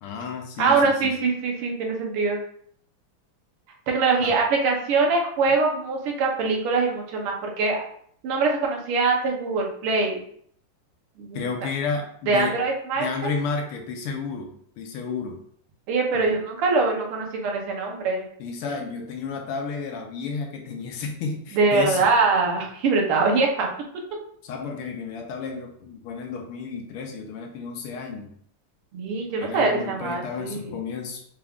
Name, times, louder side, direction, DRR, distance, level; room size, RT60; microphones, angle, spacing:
voice 1, 0.0-1.1 4.2-4.4 11.3-12.6 13.0-15.4 16.1-16.4 18.4-22.1 24.4-28.3 29.2-31.2, left 5 dB, 85° left, 3 dB, 1.6 m, -32 dB
voice 2, 0.6-2.4 3.9-7.8 8.2-10.2 11.2-11.5 12.3-13.3 15.9-18.2 21.5-23.7 28.9-30.8, right 4 dB, 85° right, 0 dB, 1.8 m, -23 dB
4.9 x 3.5 x 2.3 m, 0.64 s
omnidirectional pair, 2.4 m